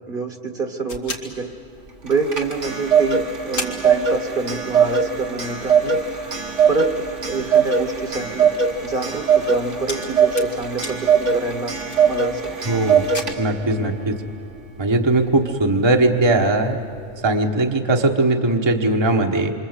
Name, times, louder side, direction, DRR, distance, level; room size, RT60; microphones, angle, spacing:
voice 1, 0.1-1.5 2.0-6.0 6.7-8.5 8.8-11.8 12.1-12.6 13.8-13.9, right 4 dB, 45° right, 6 dB, 1.6 m, -27 dB
sound 1, 0.9-2.3 2.8-2.9 3.1-3.2 3.6-4.8 5.1-5.2 5.7-12.6 12.9-13.2, left 2 dB, 85° left, 2.9 m, -37 dB
Clock, 2.1-13.7, right 6 dB, 70° right, 2.1 m, -21 dB
voice 2, 12.6-13.1 13.4-14.2 14.8-16.8 17.2-19.5, right 2 dB, 20° right, 2 dB, 1.3 m, -19 dB
27.0 x 24.5 x 8.2 m, 2.6 s
omnidirectional pair, 1.3 m